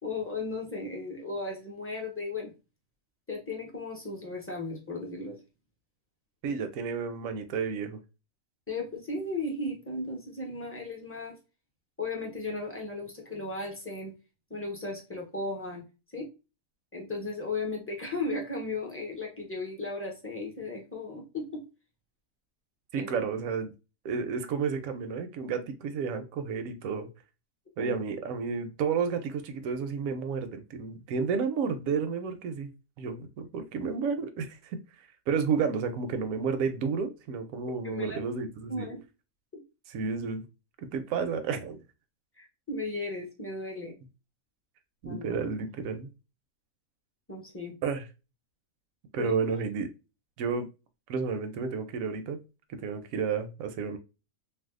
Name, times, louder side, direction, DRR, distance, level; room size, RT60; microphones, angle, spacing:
voice 1, 0.0-2.5 3.3-5.4 8.7-11.4 12.0-14.1 14.5-15.8 16.1-16.3 16.9-21.6 23.0-23.1 27.8-28.0 37.8-38.3 38.7-39.0 39.5-39.6 42.4-43.9 45.0-45.4 47.3-47.8 49.2-49.3, left 2 dB, 15° left, 0.6 m, -35 dB
voice 2, 6.4-8.0 22.9-23.7 24.0-27.1 27.8-32.7 33.0-34.8 35.3-38.9 39.9-40.4 40.9-41.8 45.0-46.1 47.8-48.0 49.1-49.9 50.4-50.7 51.1-52.4 52.7-54.0, right 5 dB, 75° right, 1.0 m, -31 dB
2.6 x 2.3 x 3.6 m
omnidirectional pair, 1.5 m